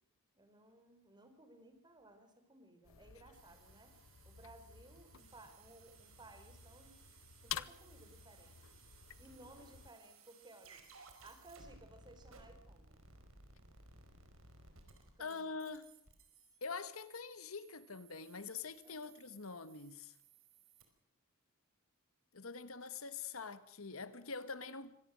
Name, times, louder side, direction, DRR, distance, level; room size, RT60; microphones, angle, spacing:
voice 1, 0.3-4.0 4.2-7.0 7.4-8.5 9.2-10.8 11.2-13.0 15.2-15.5 18.8-19.1, right 2 dB, 20° right, 4.2 m, -59 dB
sound 1, 2.8-9.9, left 10 dB, 75° left, 0.8 m, -51 dB
sound 2, 3.3-20.8, right 4 dB, 80° right, 4.9 m, -62 dB
voice 2, 15.2-15.9 16.6-20.1 22.3-25.0, left 4 dB, 90° left, 1.5 m, -45 dB
25.5 x 18.0 x 6.4 m
head